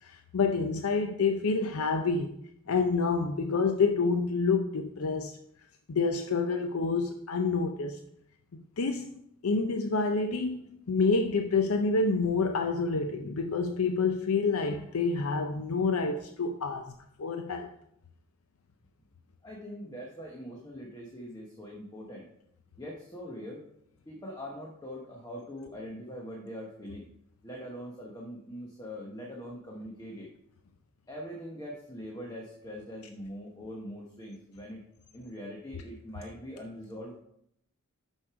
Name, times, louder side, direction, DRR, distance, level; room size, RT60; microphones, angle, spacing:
voice 1, 0.0-2.4 2.7-5.3 5.9-8.0 8.5-9.1 9.4-10.6 10.9-17.7, left 4 dB, 75° left, 5 dB, 0.5 m, -28 dB
voice 2, 19.4-22.3 22.8-23.6 24.1-27.1 27.4-30.3 31.1-34.8 35.1-37.1, equal, 15° left, -2 dB, 1.0 m, -42 dB
6.5 x 6.1 x 4.7 m, 0.73 s
head